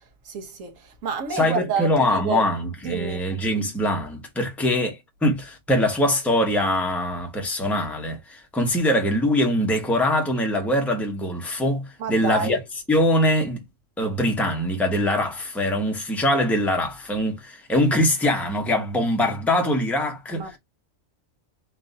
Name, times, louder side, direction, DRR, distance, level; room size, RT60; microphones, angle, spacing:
voice 1, 0.2-2.5 2.8-3.2 12.0-12.6 20.3-20.6, right 5 dB, 70° right, 1.3 m, -29 dB
voice 2, 1.3-12.6 12.9-13.6 14.0-20.6, left 1 dB, ahead, 0.8 m, -23 dB
3.7 x 2.6 x 3.8 m
omnidirectional pair, 1.4 m